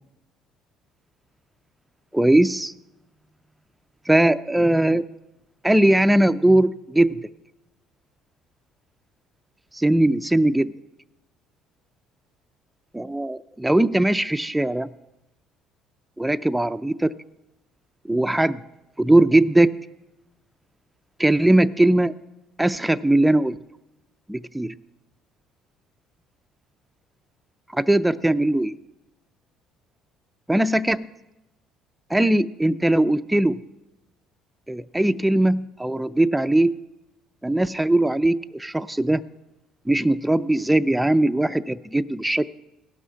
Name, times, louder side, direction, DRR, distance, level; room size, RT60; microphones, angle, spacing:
voice 1, 2.1-2.7 4.1-5.0 5.6-7.3 9.7-10.7 13.0-14.9 16.2-17.1 18.1-18.6 19.0-19.7 21.2-22.1 22.6-23.6 24.3-24.7 27.7-28.7 30.5-31.1 32.1-33.6 34.7-36.8 37.4-39.2 39.9-42.5, right 1 dB, 5° right, 9 dB, 0.4 m, -20 dB
16.5 x 6.2 x 5.6 m, 0.94 s
supercardioid pair, 75°, 0 cm